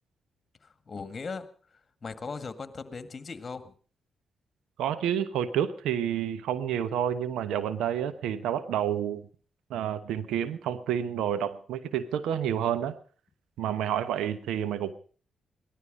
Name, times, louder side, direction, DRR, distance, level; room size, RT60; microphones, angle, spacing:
voice 1, 0.6-1.5 2.0-3.7, left 4 dB, 45° left, 11 dB, 1.8 m, -38 dB
voice 2, 4.8-9.2 9.7-12.9 13.6-14.9, right 9 dB, 85° right, 14 dB, 1.0 m, -29 dB
18.5 x 13.0 x 5.3 m, 0.42 s
supercardioid pair, 55°, 0 cm